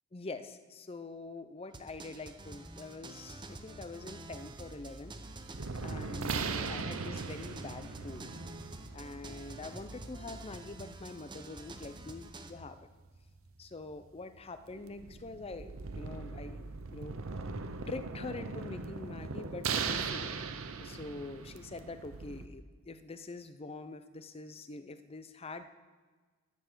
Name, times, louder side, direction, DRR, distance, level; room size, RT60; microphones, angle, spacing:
voice 1, 0.1-5.2 5.8-8.3 8.9-12.9 13.6-17.2 17.9-25.7, left 3 dB, 30° left, 10 dB, 0.6 m, -45 dB
sound 1, 1.7-12.5, right 2 dB, 20° right, 0.7 m, -48 dB
sound 2, 4.0-22.5, right 4 dB, 80° right, 0.8 m, -40 dB
12.0 x 7.1 x 6.8 m, 1.4 s
head